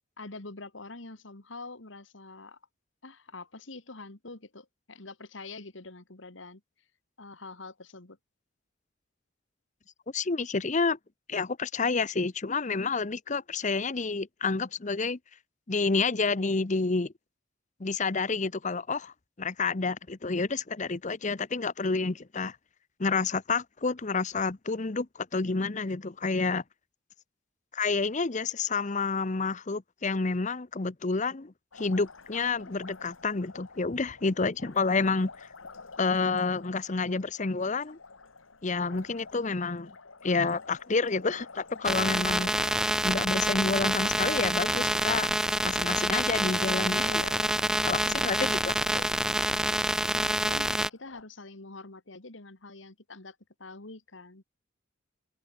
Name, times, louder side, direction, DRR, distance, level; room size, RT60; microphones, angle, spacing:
voice 1, 0.2-2.6 3.0-6.6 7.2-8.2 48.1-48.8 50.1-54.4, left 3 dB, 70° left, 2.2 m, -45 dB
voice 2, 10.1-11.0 11.3-15.2 15.7-17.1 17.8-22.6 23.0-26.6 27.7-35.5 36.0-38.0 38.6-39.9 40.2-42.5 43.0-45.3 45.6-47.3 47.8-49.1, left 4 dB, 40° left, 0.8 m, -29 dB
Liquid, 31.7-51.2, left 4 dB, 90° left, 2.3 m, -48 dB
sound 1, 41.8-50.9, right 1 dB, 5° right, 0.5 m, -27 dB
head